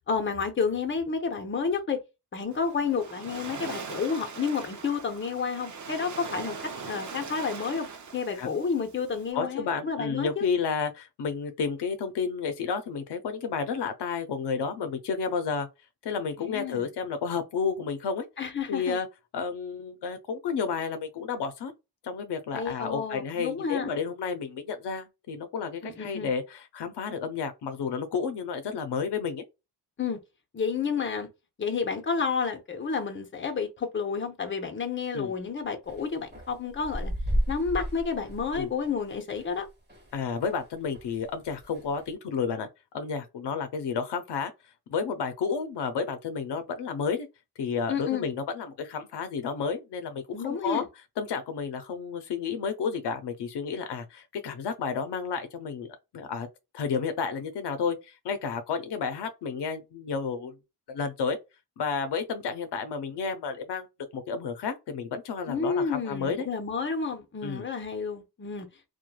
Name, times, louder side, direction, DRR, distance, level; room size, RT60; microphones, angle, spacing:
voice 1, 0.1-2.0 2.3-6.6 6.8-7.9 8.1-10.4 16.4-16.8 18.4-19.0 22.5-23.9 25.8-26.3 30.0-30.2 30.5-31.3 31.6-37.1 37.5-39.7 47.9-48.3 50.3-50.9 65.5-68.7, left 5 dB, 30° left, 0.7 m, -30 dB
Waves surf, 2.5-9.3, right 5 dB, 45° right, 0.6 m, -41 dB
voice 2, 9.3-15.7 16.0-18.2 18.7-19.1 19.3-21.7 22.0-29.4 35.1-35.3 38.5-38.7 40.1-42.7 42.9-44.5 44.9-47.3 47.6-50.9 51.2-56.5 56.7-60.6 60.9-61.4 61.8-63.9 64.1-66.5 67.4-67.7, left 5 dB, 80° left, 0.6 m, -31 dB
sound 1, 35.9-40.7 40.9-42.1, equal, 25° right, 1.3 m, -33 dB
3.0 x 2.2 x 2.2 m
wide cardioid pair, 105°, 40 cm